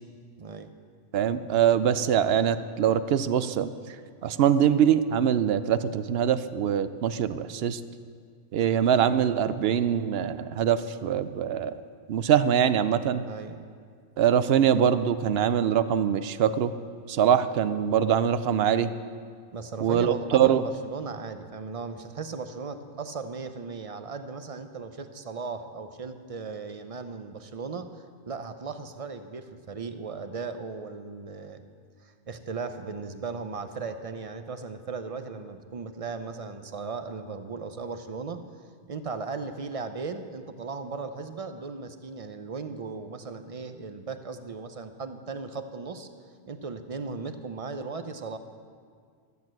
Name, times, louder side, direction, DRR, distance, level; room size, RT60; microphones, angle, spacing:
voice 1, 0.4-0.7 13.3-13.6 19.5-31.6 32.0-38.4 38.9-46.1 46.5-48.4, right 4 dB, 40° right, 9 dB, 0.7 m, -37 dB
voice 2, 1.1-3.7 4.2-7.8 8.5-11.7 12.1-13.2 14.2-16.7 17.1-18.9 19.8-20.6, right 9 dB, 70° right, 13 dB, 0.8 m, -23 dB
13.0 x 8.1 x 7.6 m, 2.1 s
omnidirectional pair, 1.1 m